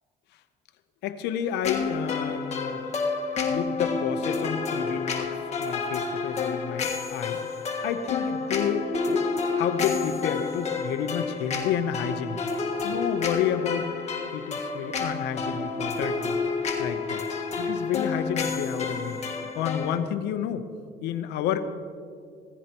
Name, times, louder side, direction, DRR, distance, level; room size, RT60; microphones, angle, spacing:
voice 1, 1.0-2.8 3.4-7.5 7.8-9.3 9.5-13.9 14.3-16.4 16.8-17.3 17.6-20.7 21.0-21.7, left 9 dB, 85° left, 10 dB, 0.8 m, -30 dB
sound 1, 1.6-20.0, left 4 dB, 40° left, 1.5 m, -30 dB
16.0 x 14.5 x 3.0 m, 2.3 s
cardioid pair, 110°, 17 cm